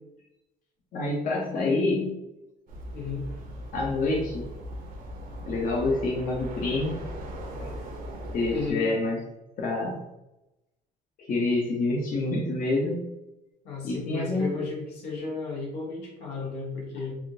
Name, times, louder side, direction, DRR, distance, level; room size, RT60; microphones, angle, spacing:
voice 1, 0.9-2.0 3.7-4.5 5.4-7.0 7.6-7.7 8.3-9.2 9.6-10.0 11.2-13.0 13.8-14.5, left 2 dB, 55° left, -2 dB, 0.7 m, -27 dB
voice 2, 1.5-2.2 2.9-3.2 8.5-8.9 13.6-17.2, left 4 dB, 90° left, -3 dB, 1.2 m, -34 dB
sound 1, 2.7-8.7, equal, 55° right, 0.7 m, -38 dB
3.5 x 2.4 x 2.7 m, 0.92 s
cardioid pair, 110°, 17 cm